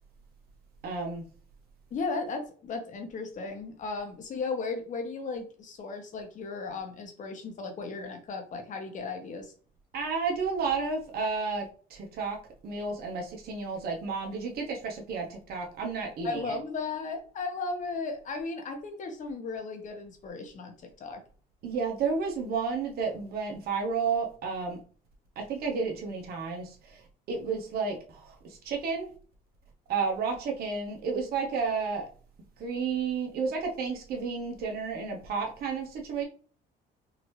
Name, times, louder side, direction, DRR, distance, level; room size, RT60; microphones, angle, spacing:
voice 1, 0.8-1.2 9.9-12.4 12.6-16.6 21.6-24.8 25.4-27.0 27.3-29.1 29.9-32.1 32.6-36.2, right 5 dB, 65° right, 1 dB, 1.0 m, -32 dB
voice 2, 1.9-9.5 16.2-21.2, left 4 dB, 50° left, 4 dB, 1.0 m, -35 dB
3.9 x 2.7 x 3.1 m, 0.42 s
cardioid pair, 110°, 17 cm